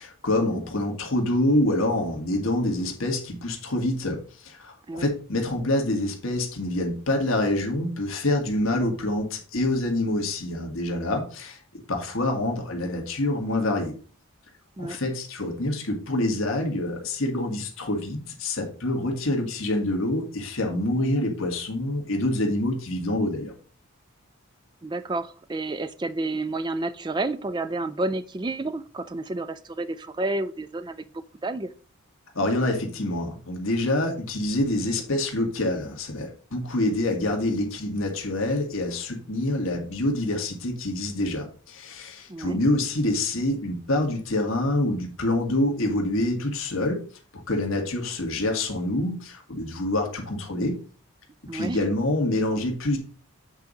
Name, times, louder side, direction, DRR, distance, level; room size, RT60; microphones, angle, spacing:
voice 1, 0.0-13.9 14.8-23.5 32.3-47.0 47.3-50.8 51.5-53.0, left 1 dB, 65° left, 2 dB, 1.7 m, -26 dB
voice 2, 24.8-31.7 42.3-42.6 51.5-51.8, right 2 dB, 20° right, 12 dB, 0.4 m, -30 dB
8.1 x 4.1 x 4.9 m, 0.40 s
head